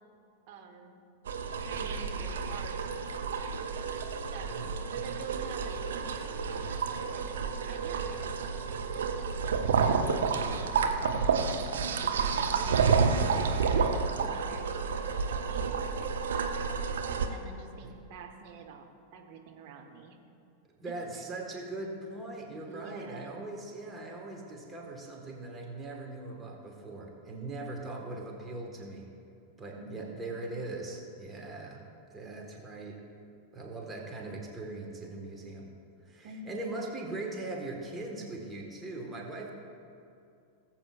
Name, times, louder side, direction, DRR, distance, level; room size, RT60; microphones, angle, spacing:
voice 1, 0.5-1.0 1.6-2.9 4.3-4.5 4.9-7.2 7.6-8.3 8.8-10.0 10.5-11.6 11.9-16.5 17.3-20.2 22.7-23.5 29.7-30.3 36.2-36.8, right 4 dB, 45° right, 3 dB, 1.1 m, -47 dB
sound 1, 1.3-17.3, right 5 dB, 65° right, 0.7 m, -30 dB
voice 2, 4.4-5.2 17.8-17.9 20.8-29.1 29.6-31.8 32.1-33.0 33.5-35.7 36.0-39.5, right 2 dB, 15° right, -1 dB, 1.6 m, -40 dB
19.5 x 7.8 x 2.5 m, 2.5 s
figure-of-eight pair, 90°, 0 cm